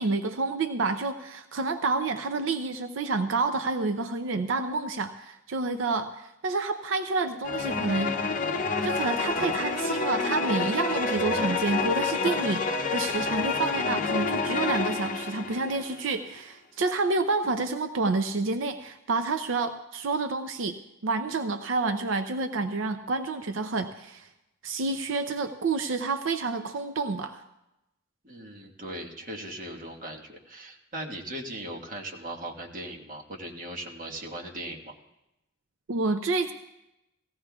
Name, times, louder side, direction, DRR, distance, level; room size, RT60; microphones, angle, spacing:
voice 1, 0.0-8.2 8.8-20.8 21.0-24.3 24.6-27.4 35.9-36.5, right 3 dB, 85° right, 8 dB, 0.5 m, -29 dB
sound 1, 7.4-16.0, left 4 dB, 45° left, 0.7 m, -28 dB
voice 2, 28.2-35.0, right 1 dB, 45° right, 1 dB, 1.5 m, -39 dB
18.5 x 15.5 x 2.3 m, 0.92 s
head